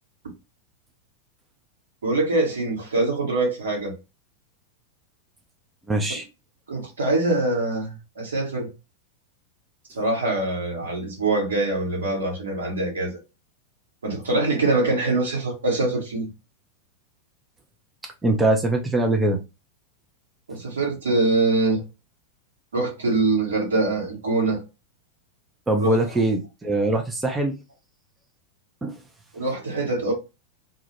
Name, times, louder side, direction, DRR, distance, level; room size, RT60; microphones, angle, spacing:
voice 1, 2.0-3.9 6.7-8.7 9.9-13.1 14.0-16.3 20.5-21.8 22.7-24.6 25.7-26.0 29.3-30.1, right 2 dB, 70° right, 1.0 m, -24 dB
voice 2, 5.9-6.3 18.0-19.4 25.7-27.6 28.8-29.0, right 2 dB, 10° right, 0.4 m, -22 dB
2.3 x 2.1 x 2.9 m
figure-of-eight pair, 90°, 0 cm